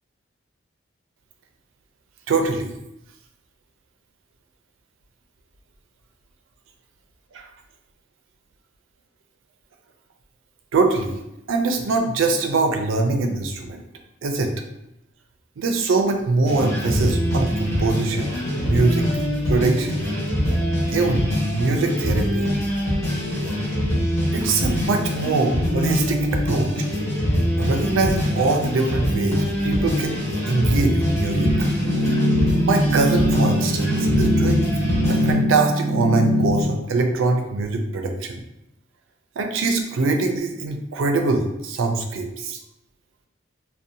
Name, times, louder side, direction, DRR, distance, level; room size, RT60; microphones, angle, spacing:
voice 1, 2.3-2.8 7.3-7.5 10.7-11.2 11.5-13.8 14.2-14.5 15.6-18.3 18.5-19.1 19.5-20.0 20.9-22.5 24.3-26.8 27.6-31.7 32.6-34.7 35.1-38.4 39.4-42.6, right 3 dB, 75° right, 4 dB, 0.4 m, -23 dB
sound 1, 16.4-35.3, equal, 15° left, 0.8 m, -23 dB
sound 2, 31.3-36.6, left 1 dB, 65° left, 0.8 m, -22 dB
2.6 x 2.1 x 2.6 m, 0.87 s
head